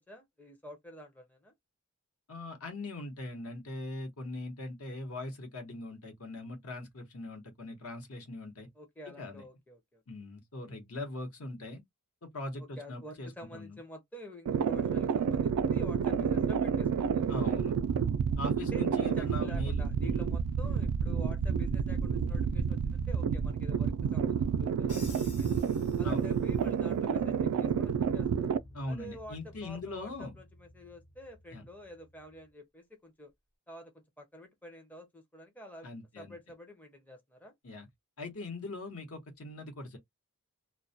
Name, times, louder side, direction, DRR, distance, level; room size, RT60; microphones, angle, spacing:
voice 1, 0.0-1.5 8.8-10.0 12.6-17.6 18.7-25.5 26.0-28.5 28.9-33.3 33.7-35.9 36.2-37.5, equal, 5° left, 0.5 m, -49 dB
voice 2, 2.3-8.7 9.2-9.4 10.1-11.8 12.2-13.8 17.3-17.7 18.4-20.2 26.0-26.3 28.7-30.3 31.5-31.6 35.8-36.4 37.6-37.9 38.2-40.0, left 2 dB, 65° left, 0.9 m, -41 dB
sound 1, 14.5-28.6, right 7 dB, 85° right, 0.3 m, -29 dB
Crash cymbal, 24.9-26.6, left 4 dB, 85° left, 1.1 m, -51 dB
sound 2, 26.4-32.5, equal, 40° left, 0.7 m, -49 dB
2.2 x 2.1 x 2.6 m
head